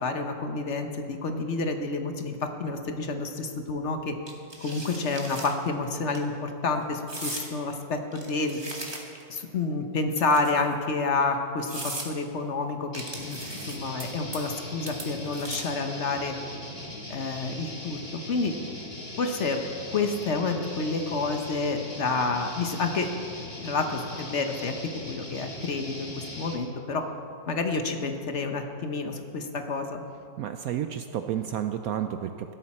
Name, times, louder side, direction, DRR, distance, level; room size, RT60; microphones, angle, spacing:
voice 1, 0.0-4.2 4.6-8.6 9.3-12.9 13.2-13.4 13.7-16.4 17.1-18.0 18.3-18.5 19.2-19.6 19.9-23.1 23.6-24.8 25.1-27.0 27.5-30.0, left 3 dB, 50° left, 5 dB, 1.0 m, -29 dB
sound 1, 4.3-5.5 5.9-6.2 7.1-7.5 8.1-9.3 10.1-10.7 11.2-11.3 11.7-12.1 12.9-14.0 14.3-14.6 14.9-15.8, right 1 dB, 15° right, 1.4 m, -38 dB
sound 2, 12.9-26.6, left 1 dB, 25° left, 1.8 m, -40 dB
voice 2, 30.4-32.5, right 10 dB, 80° right, 8 dB, 0.8 m, -31 dB
16.0 x 13.0 x 4.3 m, 2.5 s
omnidirectional pair, 2.0 m